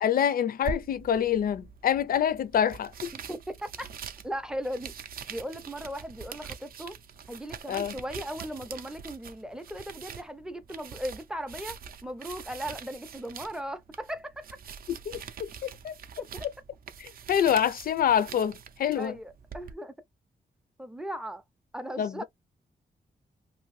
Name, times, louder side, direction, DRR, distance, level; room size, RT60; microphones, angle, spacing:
voice 1, 0.0-3.1 7.7-7.9 15.1-15.9 17.0-19.1 22.0-22.2, left 9 dB, 60° left, 0.4 m, -26 dB
sound 1, 0.6-19.7, right 7 dB, 60° right, 0.4 m, -44 dB
voice 2, 3.1-3.9 4.2-4.9 5.3-7.0 7.3-11.8 12.0-14.5 16.2-16.5 19.0-19.9 20.8-21.4 21.7-22.2, equal, 5° right, 0.4 m, -37 dB
2.7 x 2.6 x 3.1 m
wide cardioid pair, 150°, 17 cm